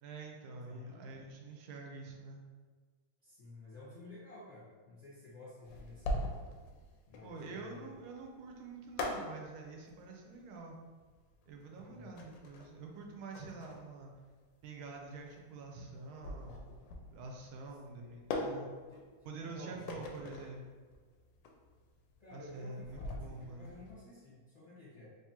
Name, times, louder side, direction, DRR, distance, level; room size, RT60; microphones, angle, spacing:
voice 1, 0.0-2.4 7.2-10.8 11.5-14.1 14.6-16.8 17.1-18.7 19.2-20.6 22.3-23.7, right 3 dB, 90° right, 1 dB, 1.5 m, -47 dB
voice 2, 0.6-1.1 3.2-6.3 7.1-8.0 11.7-12.1 17.9-18.2 18.9-20.0 22.2-25.1, left 2 dB, 20° left, -12 dB, 0.9 m, -53 dB
sound 1, 5.6-23.9, left 1 dB, 75° left, 1.1 m, -43 dB
3.5 x 3.1 x 2.8 m, 1.5 s
omnidirectional pair, 2.2 m